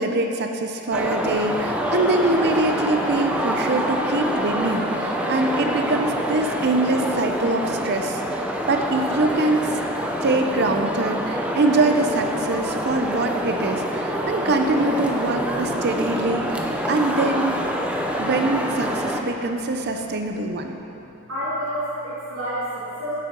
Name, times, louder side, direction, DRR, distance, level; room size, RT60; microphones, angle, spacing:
voice 1, 0.0-9.7 10.2-17.6 18.2-20.7, right 2 dB, 50° right, 5 dB, 0.7 m, -23 dB
sound 1, 0.9-19.2, equal, 5° right, 0.6 m, -26 dB
voice 2, 20.6-21.0 21.3-23.1, equal, 75° right, -10 dB, 2.4 m, -32 dB
8.4 x 8.1 x 6.0 m, 3.0 s
head